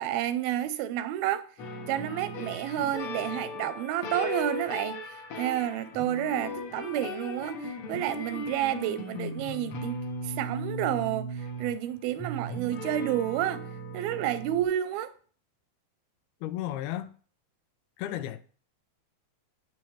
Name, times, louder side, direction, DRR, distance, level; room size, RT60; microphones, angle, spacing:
voice 1, 0.0-1.5 1.9-10.0 10.2-13.7 13.9-15.1, right 12 dB, 85° right, 2.5 m, -30 dB
sound 1, 1.6-14.6, left 1 dB, 50° left, 1.9 m, -37 dB
voice 2, 16.4-17.1 18.0-18.4, left 13 dB, 85° left, 2.7 m, -33 dB
8.8 x 7.2 x 6.2 m
omnidirectional pair, 4.5 m